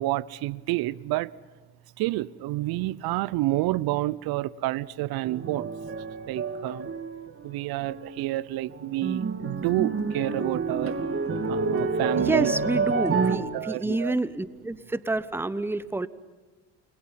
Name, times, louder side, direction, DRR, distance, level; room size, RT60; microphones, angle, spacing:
voice 1, 0.0-1.3 2.0-5.7 6.3-6.9 7.4-11.0 11.5-12.5 12.9-14.1, right 17 dB, 70° right, 0.7 m, -29 dB
sound 1, 5.2-7.5 7.8-8.4 8.7-13.4, right 4 dB, 35° right, 2.6 m, -29 dB
voice 2, 12.2-16.1, right 2 dB, 5° right, 0.9 m, -28 dB
29.5 x 22.0 x 5.7 m
hypercardioid pair, 65°, 38 cm